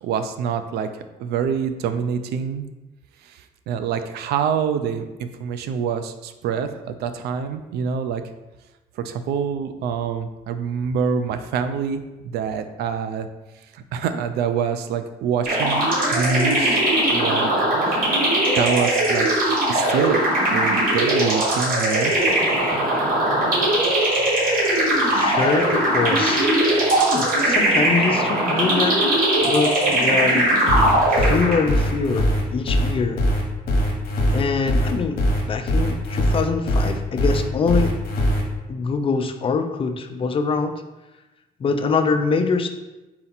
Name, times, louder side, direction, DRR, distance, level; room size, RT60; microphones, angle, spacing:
voice 1, 0.0-2.7 3.2-8.2 9.0-12.0 12.3-13.3 13.7-16.8 17.1-17.5 17.9-18.0 18.5-19.4 19.7-20.2 20.5-22.1, right 7 dB, 75° right, 9 dB, 0.4 m, -26 dB
sound 1, 15.4-31.8, right 1 dB, 55° right, 1.4 m, -20 dB
voice 2, 25.1-26.5 27.0-29.1 29.4-30.5 30.8-33.2 34.3-37.9 38.7-40.7 41.6-42.7, left 4 dB, 30° left, 7 dB, 0.4 m, -24 dB
sound 2, 30.7-38.4, equal, 60° left, 1.0 m, -21 dB
4.2 x 2.8 x 4.0 m, 1.0 s
cardioid pair, 110°, 17 cm